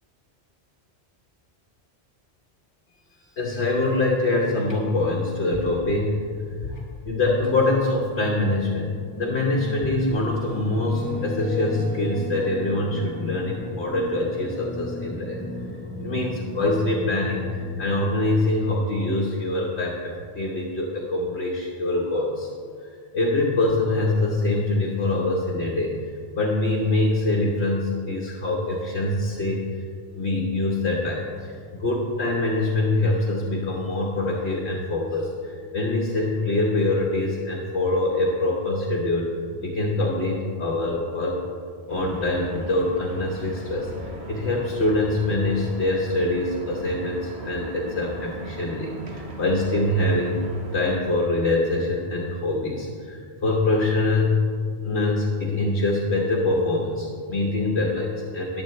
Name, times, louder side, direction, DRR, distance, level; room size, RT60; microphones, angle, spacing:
voice 1, 3.4-6.2 6.6-15.4 16.0-22.5 23.1-25.9 26.3-29.7 30.1-39.3 39.6-41.4 41.9-50.4 50.7-54.5 54.8-58.6, left 2 dB, 75° left, -2 dB, 1.5 m, -24 dB
sound 1, 8.4-18.4, left 1 dB, 10° left, 0.7 m, -34 dB
sound 2, 41.9-51.0, right 2 dB, 75° right, 1.5 m, -38 dB
14.5 x 10.5 x 3.2 m, 2.1 s
omnidirectional pair, 1.1 m